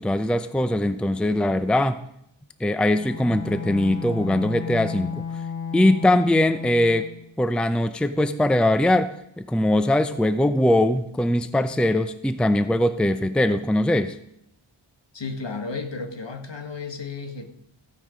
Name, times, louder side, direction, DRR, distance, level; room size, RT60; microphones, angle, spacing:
voice 1, 0.0-2.0 2.6-5.1 5.7-7.1 7.4-14.2, left 1 dB, ahead, 11 dB, 0.6 m, -21 dB
Bowed string instrument, 2.9-7.2, left 6 dB, 40° left, 4.4 m, -34 dB
voice 2, 15.1-17.5, left 4 dB, 60° left, 6 dB, 1.7 m, -33 dB
15.0 x 9.3 x 5.1 m, 0.74 s
wide cardioid pair, 75°, 49 cm